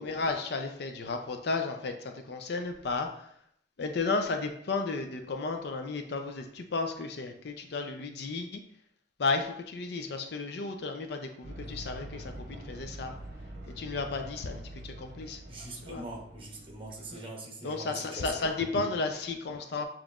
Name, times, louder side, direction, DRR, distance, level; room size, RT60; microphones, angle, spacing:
voice 1, 0.0-3.3 3.8-8.6 9.2-13.2 13.7-15.4 15.8-16.0 17.6-19.9, left 3 dB, 60° left, 6 dB, 0.5 m, -33 dB
sound 1, 11.4-17.2, right 1 dB, 50° right, 0.9 m, -45 dB
voice 2, 15.5-18.5, right 2 dB, 30° right, -1 dB, 1.0 m, -42 dB
7.0 x 3.0 x 2.4 m, 0.70 s
head